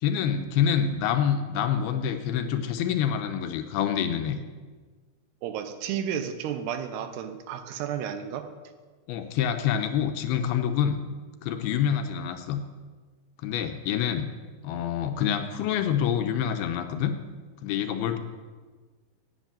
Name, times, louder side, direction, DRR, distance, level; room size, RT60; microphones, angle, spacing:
voice 1, 0.0-4.4 9.1-11.0 11.4-12.6 13.4-14.3 14.6-17.1 17.6-18.2, left 8 dB, 80° left, 7 dB, 2.6 m, -26 dB
voice 2, 5.4-8.5, right 9 dB, 85° right, 8 dB, 2.9 m, -32 dB
10.0 x 8.4 x 8.9 m, 1.4 s
omnidirectional pair, 4.7 m